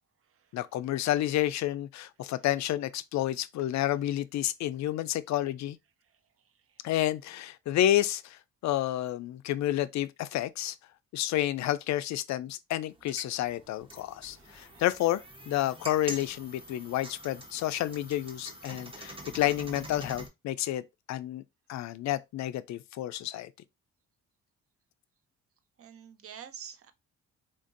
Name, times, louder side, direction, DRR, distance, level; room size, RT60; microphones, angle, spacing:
voice 1, 0.5-5.8 6.8-10.8 11.1-15.2 15.5-21.4 21.7-23.5, left 13 dB, 65° left, 0.4 m, -30 dB
sound 1, 12.9-20.3, right 1 dB, 20° right, 0.9 m, -45 dB
voice 2, 14.3-14.8 25.8-26.9, right 8 dB, 50° right, 0.6 m, -48 dB
3.8 x 2.6 x 2.5 m
cardioid pair, 90°, 30 cm